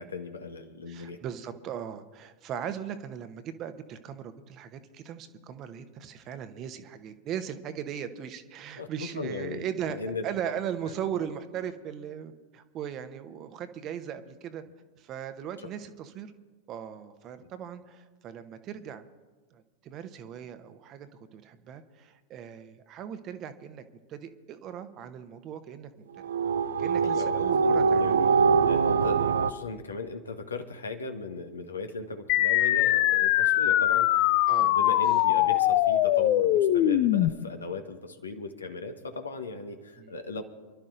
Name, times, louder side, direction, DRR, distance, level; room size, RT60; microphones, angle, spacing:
voice 1, 0.0-1.2 8.8-8.9 9.1-10.2 15.6-15.7 17.4-17.5 27.0-40.4, left 4 dB, 75° left, 6 dB, 1.4 m, -38 dB
voice 2, 0.9-10.0 10.2-14.6 15.0-16.3 16.7-19.1 19.5-23.8 24.1-25.9 26.1-26.2 26.8-28.2 34.5-34.7 40.0-40.1, right 9 dB, 35° right, 10 dB, 1.0 m, -38 dB
sound 1, 26.2-29.5, right 5 dB, 65° right, 0.5 m, -23 dB
sound 2, 32.3-37.3, left 13 dB, 45° left, 0.5 m, -22 dB
28.5 x 12.0 x 2.6 m, 1.3 s
figure-of-eight pair, 90°, 0 cm